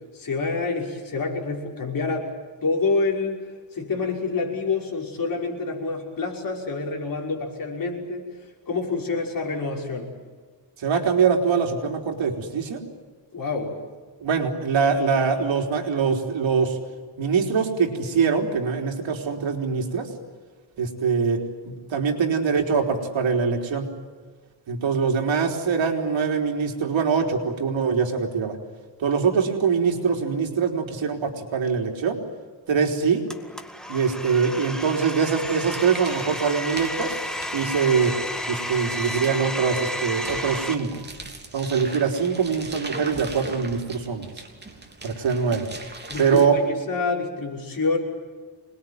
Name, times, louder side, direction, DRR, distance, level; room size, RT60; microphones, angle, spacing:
voice 1, 0.1-2.3 2.6-3.4 3.7-8.2 8.7-10.1 13.3-13.8 46.1-48.0, left 3 dB, 45° left, 0 dB, 5.8 m, -27 dB
voice 2, 10.8-12.8 14.2-16.8 17.2-20.1 20.8-23.9 24.7-28.6 29.0-32.2 32.7-33.3 33.9-37.2 37.5-38.2 38.5-40.9 41.5-44.3 45.0-45.7 46.2-46.6, right 5 dB, 75° right, 2 dB, 3.8 m, -23 dB
Domestic sounds home sounds, 33.3-40.7, equal, ahead, 2.1 m, -32 dB
sound 1, 35.4-46.5, right 3 dB, 20° right, 3.2 m, -41 dB
26.0 x 21.0 x 9.4 m, 1.5 s
wide cardioid pair, 130°, 46 cm